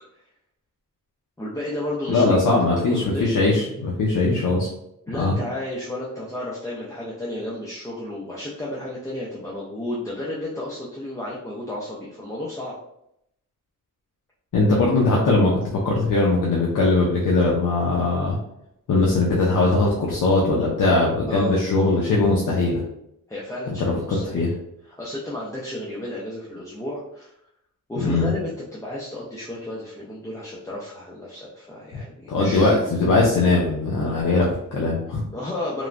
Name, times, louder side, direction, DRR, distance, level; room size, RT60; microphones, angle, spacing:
voice 1, 1.4-2.6 2.9-3.6 5.1-12.8 21.3-21.5 23.3-24.5 25.0-27.3 27.9-32.8 35.3-35.9, left 1 dB, 10° left, -6 dB, 0.3 m, -32 dB
voice 2, 2.1-4.7 5.2-5.3 14.5-15.6 15.8-18.4 18.9-22.8 23.7-24.5 28.0-28.3 32.3-35.2, left 2 dB, 70° left, -3 dB, 0.6 m, -20 dB
3.1 x 2.1 x 2.4 m, 0.79 s
wide cardioid pair, 180°, 33 cm